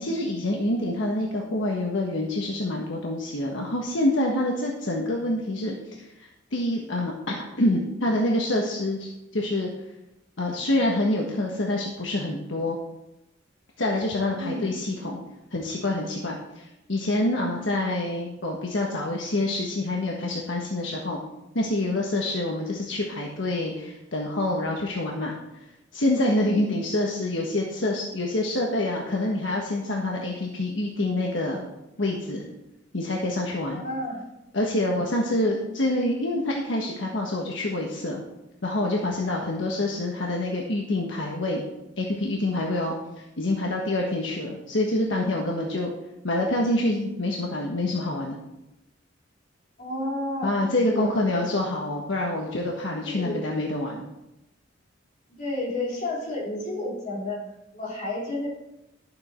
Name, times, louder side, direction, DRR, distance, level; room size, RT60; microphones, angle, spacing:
voice 1, 0.0-9.7 10.4-12.8 13.8-15.2 15.5-21.2 21.5-25.4 25.9-31.6 32.0-32.5 32.9-33.8 34.5-38.2 38.6-41.6 42.0-42.9 43.4-45.9 46.2-48.4 50.4-54.0, left 1 dB, 75° left, -1 dB, 1.4 m, -26 dB
voice 2, 14.3-14.8 26.5-26.8 33.7-34.3 49.8-50.6 50.9-51.1 53.0-53.5 55.4-58.5, left 1 dB, 45° left, -5 dB, 3.7 m, -31 dB
12.0 x 7.6 x 4.4 m, 0.91 s
head